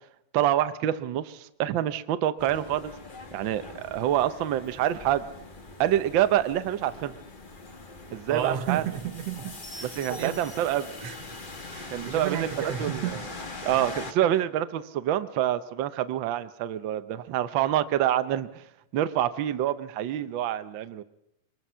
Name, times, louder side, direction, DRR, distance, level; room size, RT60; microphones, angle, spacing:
voice 1, 0.3-2.9 3.3-5.3 5.8-7.1 8.1-8.8 9.8-10.9 11.9-13.2 13.6-18.6 18.9-21.0, right 12 dB, 85° right, 1.0 m, -27 dB
sound 1, 2.4-14.1, left 3 dB, 30° left, 0.9 m, -42 dB
voice 2, 8.3-10.4 11.0-11.4 11.7-13.3 13.8-13.9, right 10 dB, 65° right, 2.0 m, -33 dB
24.5 x 20.5 x 5.6 m
omnidirectional pair, 3.3 m